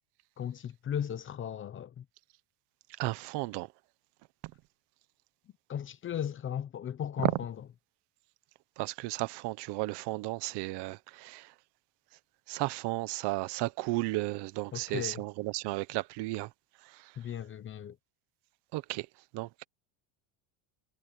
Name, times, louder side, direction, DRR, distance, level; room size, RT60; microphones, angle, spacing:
voice 1, 0.4-2.0 5.7-7.5 14.7-15.2 17.2-18.0, left 9 dB, 25° left, 0.9 m, -36 dB
voice 2, 3.0-3.7 7.2-7.4 8.8-11.5 12.5-16.5 16.8-17.2 18.7-19.1 19.3-19.6, right 20 dB, 55° right, 1.1 m, -34 dB
cardioid pair, 155°, 49 cm